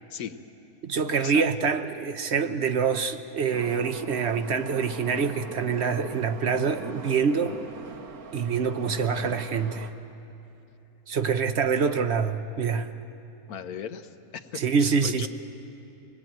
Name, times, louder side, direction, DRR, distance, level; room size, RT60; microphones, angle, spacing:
voice 1, 0.8-7.7 8.3-9.9 11.1-12.9 14.5-15.3, right 6 dB, 55° right, 0.9 m, -26 dB
Subway metro underground, 3.5-9.9, right 5 dB, 85° right, 1.6 m, -41 dB
voice 2, 13.5-15.3, left 8 dB, 90° left, 1.4 m, -37 dB
24.0 x 19.0 x 9.1 m
omnidirectional pair, 1.5 m